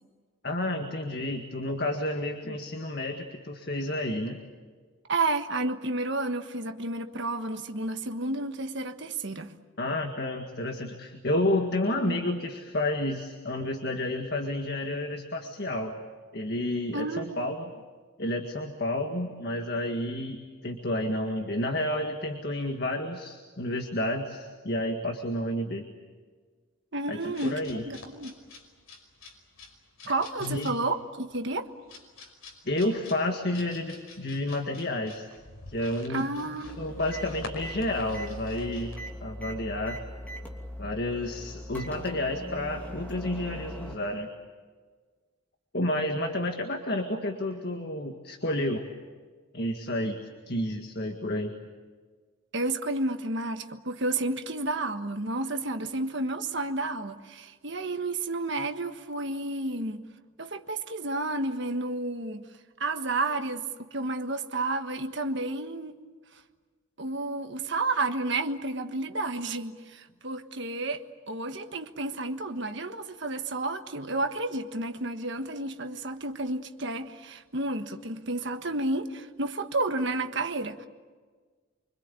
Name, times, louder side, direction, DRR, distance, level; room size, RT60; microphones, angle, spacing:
voice 1, 0.4-4.4 9.8-16.0 16.3-17.7 18.2-20.4 20.6-25.8 27.1-27.8 30.4-30.7 32.7-35.3 35.7-36.3 36.8-38.9 39.2-40.0 40.8-44.3 45.7-48.9 49.5-50.2 50.5-51.5, left 1 dB, 50° left, 1.8 m, -30 dB
voice 2, 5.1-9.5 12.0-12.2 16.9-17.3 26.9-28.4 30.1-31.7 36.1-36.8 52.5-60.0 60.4-62.4 62.8-65.9 67.0-80.9, right 2 dB, 55° right, 1.5 m, -31 dB
sound 1, 27.2-39.1, left 3 dB, 80° left, 5.5 m, -48 dB
sound 2, 36.6-44.0, equal, 5° left, 2.7 m, -40 dB
25.5 x 25.0 x 8.4 m
head